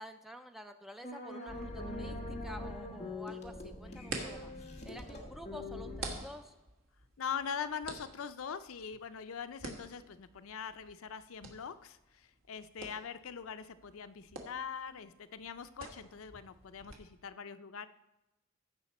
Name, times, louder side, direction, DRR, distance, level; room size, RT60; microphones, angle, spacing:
voice 1, 0.0-4.5 4.8-6.5, equal, ahead, 7 dB, 0.3 m, -49 dB
sound 1, 1.0-6.2, left 1 dB, 30° left, 1.3 m, -43 dB
sound 2, 1.5-17.0, right 3 dB, 70° right, 1.5 m, -50 dB
voice 2, 7.2-17.9, left 7 dB, 70° left, 12 dB, 0.5 m, -42 dB
15.0 x 5.8 x 4.2 m, 0.97 s
head